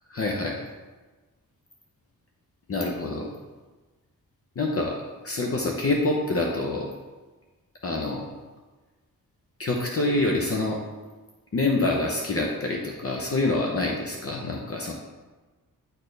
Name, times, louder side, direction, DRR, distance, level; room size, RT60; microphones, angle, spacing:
voice 1, 0.1-0.6 2.7-3.3 4.6-5.0 5.2-6.9 7.8-8.3 9.6-10.8 11.5-14.9, left 2 dB, 45° left, -1 dB, 0.7 m, -26 dB
9.5 x 4.4 x 3.3 m, 1.2 s
wide cardioid pair, 170°, 33 cm